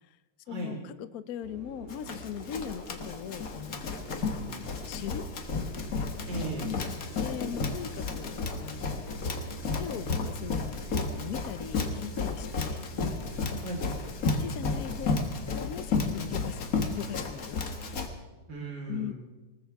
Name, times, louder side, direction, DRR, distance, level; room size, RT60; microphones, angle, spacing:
voice 1, 0.5-4.2 4.9-5.2 6.6-9.2 9.7-14.0 14.4-15.2 15.5-17.6 18.9-19.1, left 9 dB, 75° left, 13 dB, 0.8 m, -40 dB
sound 1, 1.4-14.2, right 3 dB, 70° right, 3.0 m, -49 dB
Run, 1.9-18.1, left 4 dB, 45° left, 1.6 m, -32 dB
voice 2, 4.2-4.6 6.3-6.7 13.6-13.9 18.5-19.1, right 2 dB, 55° right, -1 dB, 4.7 m, -36 dB
20.5 x 19.5 x 3.5 m, 1.2 s
omnidirectional pair, 2.4 m